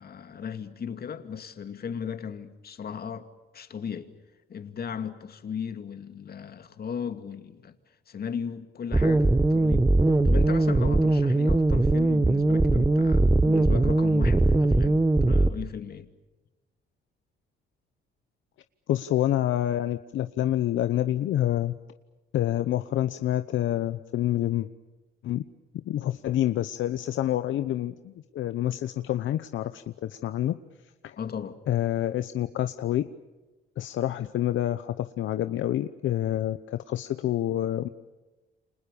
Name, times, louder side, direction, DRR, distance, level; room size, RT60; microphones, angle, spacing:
voice 1, 0.0-3.3 3.5-4.1 4.5-7.8 8.1-16.1 31.2-31.6, left 7 dB, 50° left, 2.4 m, -36 dB
sound 1, 8.9-15.5, right 2 dB, 15° right, 1.2 m, -21 dB
voice 2, 18.9-21.7 22.3-24.7 25.2-25.4 25.8-30.6 31.0-31.2 31.7-33.0 33.8-37.9, left 12 dB, 75° left, 0.9 m, -27 dB
29.5 x 26.0 x 7.0 m
cardioid pair, 90°, 20 cm